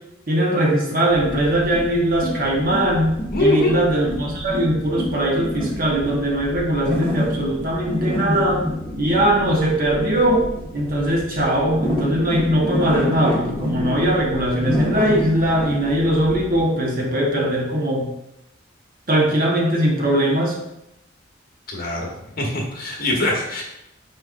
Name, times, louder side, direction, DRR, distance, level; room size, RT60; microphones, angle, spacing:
voice 1, 0.3-8.6 9.0-10.5 10.7-18.0 19.1-20.6, right 1 dB, 45° right, -1 dB, 1.0 m, -20 dB
sound 1, 1.1-16.6, left 1 dB, 25° right, 1.3 m, -28 dB
voice 2, 3.3-3.8 21.7-22.1 22.4-23.6, left 1 dB, 50° left, -1 dB, 1.1 m, -22 dB
4.9 x 4.3 x 2.5 m, 0.85 s
head